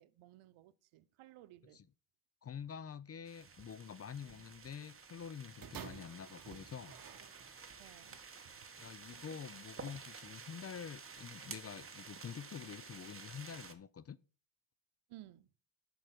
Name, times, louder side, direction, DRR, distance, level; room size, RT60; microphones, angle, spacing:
voice 1, 0.0-1.9 4.2-4.4 7.8-8.2 8.4-8.7 15.1-15.5, right 14 dB, 80° right, 0.9 m, -58 dB
voice 2, 2.4-7.0 8.8-14.2, left 7 dB, 30° left, 0.5 m, -47 dB
sound 1, 3.3-13.7, right 5 dB, 25° right, 1.5 m, -52 dB
sound 2, 5.6-7.9 8.7-8.8, right 7 dB, 45° right, 1.3 m, -51 dB
11.0 x 4.8 x 6.0 m
cardioid pair, 80°, 49 cm